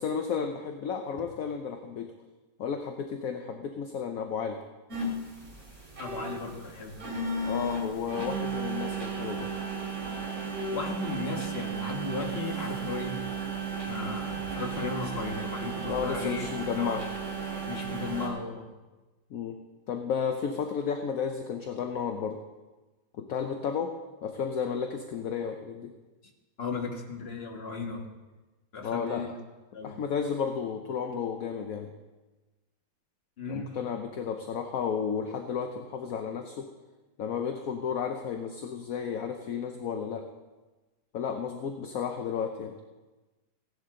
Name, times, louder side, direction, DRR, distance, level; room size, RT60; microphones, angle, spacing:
voice 1, 0.0-2.1 2.6-4.6 7.4-9.5 15.9-17.0 19.3-19.6 19.9-22.4 23.1-23.9 24.2-25.9 28.8-29.3 29.8-31.9 33.5-36.7 37.2-40.2 41.1-42.7, left 6 dB, 60° left, 5 dB, 1.0 m, -32 dB
sound 1, 4.9-18.3, right 4 dB, 45° right, 3.6 m, -34 dB
voice 2, 6.0-6.9 10.7-13.2 13.9-16.5 16.7-17.0 17.7-18.7 26.6-28.0 28.7-29.3 29.7-30.0 33.4-33.9, left 4 dB, 35° left, 2 dB, 1.6 m, -35 dB
16.5 x 11.0 x 3.8 m, 1.2 s
omnidirectional pair, 2.1 m